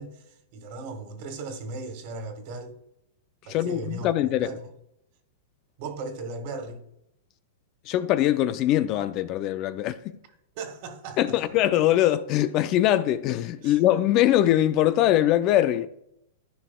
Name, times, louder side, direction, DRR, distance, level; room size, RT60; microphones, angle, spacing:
voice 1, 0.0-2.8 3.4-4.1 4.4-4.6 5.8-6.8 10.6-11.4 13.6-13.8, right 3 dB, 50° right, 1.8 m, -37 dB
voice 2, 3.5-4.5 7.9-10.2 11.2-15.9, left 13 dB, 40° left, 0.4 m, -22 dB
14.0 x 4.9 x 2.3 m
hypercardioid pair, 135°, 0 cm